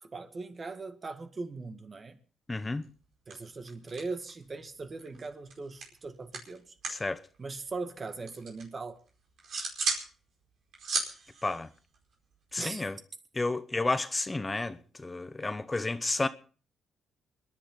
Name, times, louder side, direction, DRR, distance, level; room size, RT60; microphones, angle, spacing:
voice 1, 0.0-2.2 3.3-6.7 7.4-9.0 12.6-12.8, right 3 dB, 35° right, 1.9 m, -40 dB
voice 2, 2.5-2.8 6.9-7.2 11.4-11.7 12.5-13.0 13.4-16.3, left 2 dB, 20° left, 0.7 m, -31 dB
sound 1, 2.8-3.0 3.3-4.5 4.8-7.1 7.3-8.7 9.1-10.1 10.4-12.5, right 4 dB, 65° right, 4.8 m, -36 dB
28.0 x 11.0 x 3.9 m
cardioid pair, 90°, 0 cm